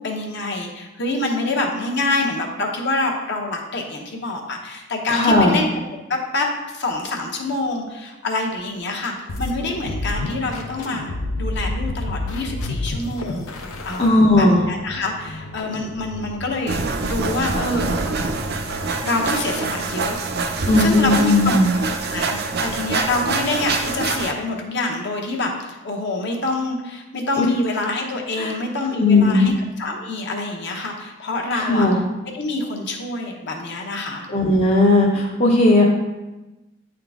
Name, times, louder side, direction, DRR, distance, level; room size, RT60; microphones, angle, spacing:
voice 1, 0.0-5.7 6.1-17.9 19.0-20.2 20.8-21.6 22.1-31.9 32.2-34.3, left 2 dB, 55° left, 1 dB, 0.9 m, -26 dB
voice 2, 5.1-5.6 14.0-14.6 20.7-21.7 27.4-27.5 28.4-28.5 29.0-29.5 31.5-32.0 34.3-35.9, left 2 dB, 30° left, -2 dB, 0.6 m, -16 dB
sound 1, 9.3-19.0, left 2 dB, 85° left, 0.7 m, -31 dB
sound 2, 16.7-24.3, right 3 dB, 50° right, 0.5 m, -25 dB
8.9 x 3.8 x 3.5 m, 1.1 s
head